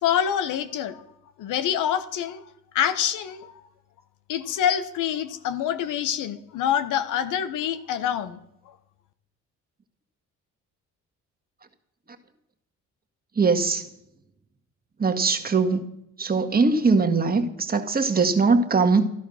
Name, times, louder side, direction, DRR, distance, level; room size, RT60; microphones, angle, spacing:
voice 1, 0.0-1.0 1.4-2.4 2.7-3.5 4.3-8.4, left 9 dB, 90° left, 11 dB, 1.1 m, -26 dB
voice 2, 13.4-13.8 15.0-15.8 16.2-19.1, right 4 dB, 30° right, 5 dB, 1.7 m, -21 dB
14.0 x 11.5 x 6.4 m, 0.81 s
cardioid pair, 90°, 30 cm